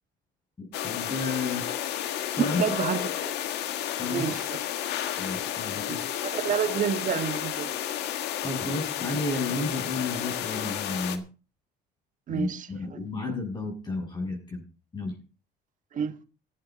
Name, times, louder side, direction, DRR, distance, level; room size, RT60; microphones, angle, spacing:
voice 1, 0.6-1.6 2.3-2.6 4.0-4.3 5.2-6.0 8.4-11.2 12.3-14.6 14.9-15.1, left 2 dB, 25° left, 6.5 m, -32 dB
sound 1, 0.7-11.2, left 11 dB, 80° left, 1.7 m, -32 dB
voice 2, 2.6-3.0 3.3-3.4 4.1-4.6 5.8-7.7 12.3-12.7 15.9-16.1, right 8 dB, 50° right, 1.5 m, -29 dB
16.0 x 11.5 x 4.2 m
cardioid pair, 110°, 17 cm